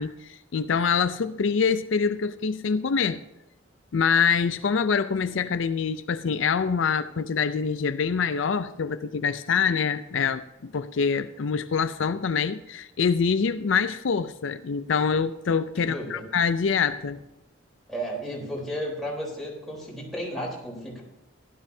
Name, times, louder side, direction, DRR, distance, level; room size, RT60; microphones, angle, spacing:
voice 1, 0.0-3.2 3.9-17.2, left 6 dB, 75° left, 11 dB, 0.5 m, -25 dB
voice 2, 15.8-16.2 17.9-21.0, equal, ahead, -4 dB, 3.7 m, -33 dB
15.5 x 12.0 x 2.7 m, 0.96 s
head